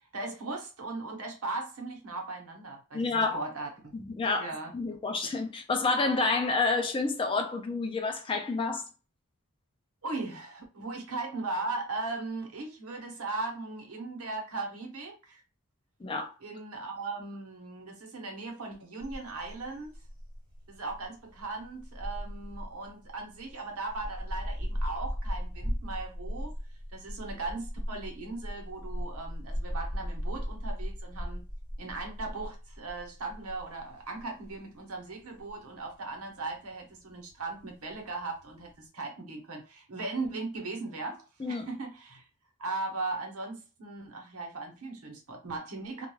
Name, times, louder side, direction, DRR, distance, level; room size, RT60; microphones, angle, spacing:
voice 1, 0.1-3.9 4.4-4.8 10.0-15.4 16.4-19.9 20.7-26.5 26.9-31.4 31.8-42.2 42.6-46.1, right 3 dB, 80° right, 0.9 m, -38 dB
voice 2, 2.9-3.4 3.9-8.9 16.0-16.3 41.4-41.7, left 3 dB, 25° left, 0.3 m, -29 dB
sound 1, 19.0-38.8, equal, 35° right, 1.3 m, -38 dB
2.3 x 2.2 x 3.0 m
head